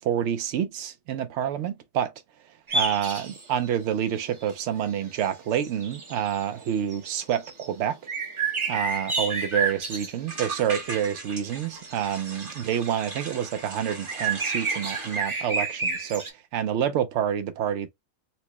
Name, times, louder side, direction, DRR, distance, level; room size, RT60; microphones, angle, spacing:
voice 1, 0.0-2.1 2.7-8.0 8.7-16.2 16.5-17.9, right 9 dB, 75° right, 0.9 m, -28 dB
sound 1, 2.7-3.7 4.1-4.5 5.1-5.3 5.5-7.7 8.1-10.4 10.7-13.1 13.5-16.3, right 4 dB, 30° right, 0.7 m, -30 dB
sound 2, 9.2-9.3 9.5-9.8 10.3-15.2, right 3 dB, 45° right, 1.3 m, -39 dB
4.3 x 2.1 x 2.8 m
omnidirectional pair, 1.2 m